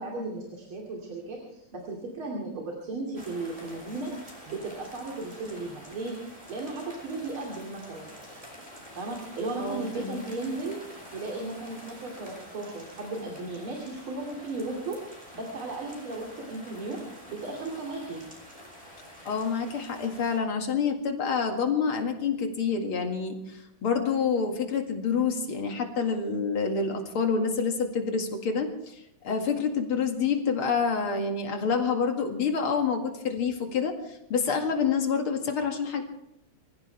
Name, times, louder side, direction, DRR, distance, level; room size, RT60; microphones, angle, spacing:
voice 1, 0.0-6.2 6.5-8.1 9.0-10.8 11.1-17.0 17.3-18.2, right 2 dB, 75° right, -1 dB, 3.5 m, -35 dB
sound 1, 3.1-20.4, equal, 15° right, 4.6 m, -47 dB
voice 2, 9.6-10.2 19.3-36.0, left 5 dB, 90° left, 3 dB, 3.0 m, -28 dB
26.0 x 15.5 x 3.4 m, 0.80 s
omnidirectional pair, 2.3 m